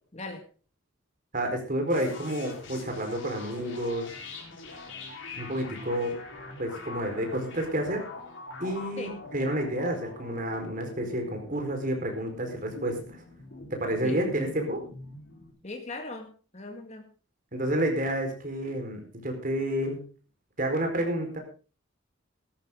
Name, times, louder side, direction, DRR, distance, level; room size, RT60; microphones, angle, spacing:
voice 1, 0.1-0.4 9.0-9.2 14.0-14.2 15.6-17.1, left 2 dB, 35° left, 4 dB, 2.0 m, -39 dB
voice 2, 1.3-4.1 5.4-6.2 6.6-8.0 8.6-13.0 13.7-14.8 17.5-20.0 20.6-21.4, right 1 dB, 40° right, 4 dB, 4.5 m, -30 dB
sound 1, 1.9-15.5, left 3 dB, 60° left, 4.1 m, -44 dB
16.0 x 13.5 x 3.8 m, 0.36 s
head